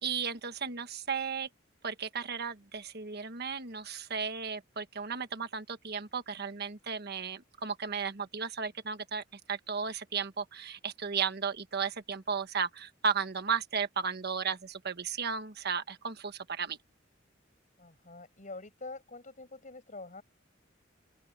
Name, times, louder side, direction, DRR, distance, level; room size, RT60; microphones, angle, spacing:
voice 1, 0.0-1.5 1.8-16.8, right 6 dB, 55° right, 1.3 m, -34 dB
voice 2, 17.8-20.2, left 3 dB, 40° left, 7.5 m, -46 dB
open air
head